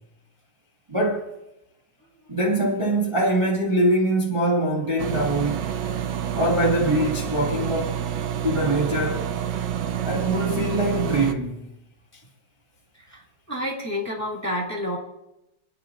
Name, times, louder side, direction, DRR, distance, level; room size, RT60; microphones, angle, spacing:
voice 1, 0.9-1.3 2.3-5.6 6.3-7.9 8.4-9.3 10.0-11.7, right 1 dB, 15° right, 1.7 m, -23 dB
sound 1, 5.0-11.3, right 9 dB, 65° right, 1.3 m, -28 dB
voice 2, 13.0-15.0, left 1 dB, 10° left, 2.0 m, -30 dB
29.0 x 10.0 x 2.5 m
omnidirectional pair, 2.3 m